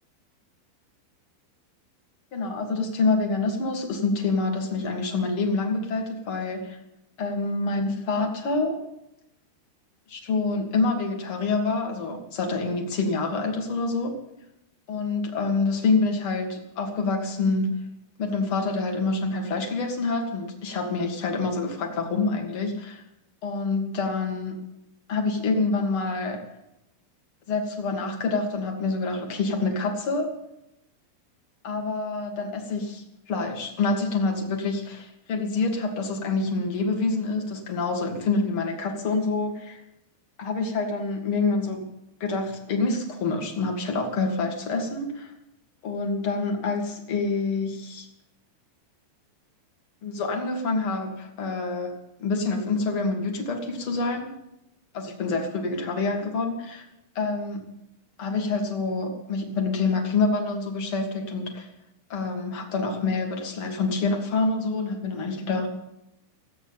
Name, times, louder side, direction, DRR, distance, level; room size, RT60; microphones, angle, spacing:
voice 1, 2.3-6.8 7.2-8.8 10.1-14.2 14.9-17.8 18.2-23.0 23.4-24.6 25.1-26.5 27.5-30.3 31.6-39.8 40.4-41.9 42.2-45.3 45.8-48.1 50.0-51.9 52.2-54.3 54.9-56.9 57.2-57.6 58.2-61.7 62.1-65.7, left 3 dB, 45° left, 3 dB, 1.8 m, -27 dB
16.5 x 8.7 x 8.7 m, 0.86 s
omnidirectional pair, 5.4 m